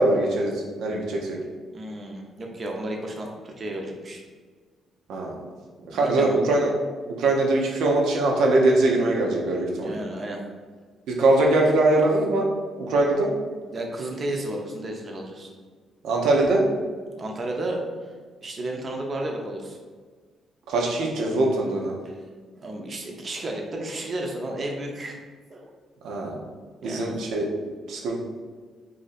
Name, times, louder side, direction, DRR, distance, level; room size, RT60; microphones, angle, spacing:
voice 1, 0.0-1.4 5.1-5.4 5.9-6.7 7.2-10.0 11.1-12.5 12.8-13.3 16.0-16.6 20.7-21.9 26.0-26.4 26.8-27.5 27.9-28.2, right 2 dB, 80° right, -1 dB, 0.6 m, -22 dB
voice 2, 1.7-4.2 5.9-6.4 9.8-10.4 13.7-15.5 17.1-17.8 18.4-19.8 22.0-22.1 22.6-25.2 25.5-25.7 26.8-27.1, right 1 dB, 40° right, 1 dB, 0.6 m, -32 dB
2.8 x 2.5 x 4.1 m, 1.5 s
cardioid pair, 90°, 0 cm